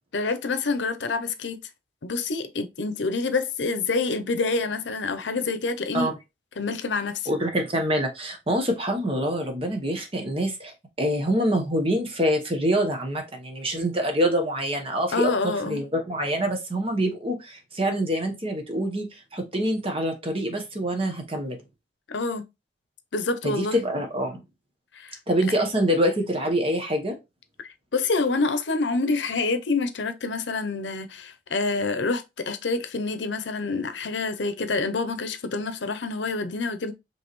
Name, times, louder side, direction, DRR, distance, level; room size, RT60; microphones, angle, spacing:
voice 1, 0.1-1.6 2.0-6.1 6.6-7.3 15.1-15.8 22.1-22.4 23.1-23.8 24.9-25.2 27.9-36.9, left 3 dB, 85° left, 0.7 m, -27 dB
voice 2, 7.3-21.6 23.4-24.4 25.3-27.1, equal, 30° right, 1.1 m, -25 dB
5.3 x 3.2 x 3.1 m
head